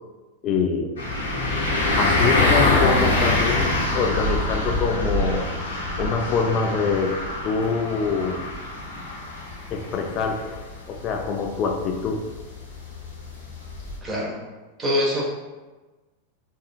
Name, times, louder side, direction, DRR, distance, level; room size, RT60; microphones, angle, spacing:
voice 1, 0.4-1.0 2.0-5.5 6.0-8.5 9.7-10.6 10.9-12.3, left 5 dB, 35° left, 3 dB, 0.4 m, -25 dB
sound 1, 1.0-14.0, left 2 dB, 65° left, 0.9 m, -25 dB
voice 2, 14.0-14.4 14.8-15.2, left 1 dB, 20° right, -4 dB, 1.0 m, -24 dB
4.8 x 2.7 x 2.2 m, 1.2 s
figure-of-eight pair, 90°, 0 cm